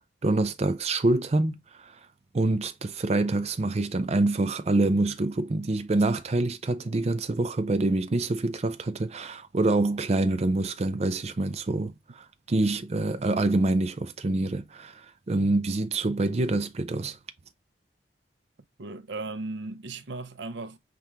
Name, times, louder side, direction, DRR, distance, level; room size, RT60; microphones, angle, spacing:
voice 1, 0.2-2.0 2.3-17.2, right 2 dB, 35° right, 0.5 m, -26 dB
voice 2, 18.8-20.8, right 3 dB, 80° right, 0.6 m, -37 dB
5.8 x 2.5 x 3.3 m
head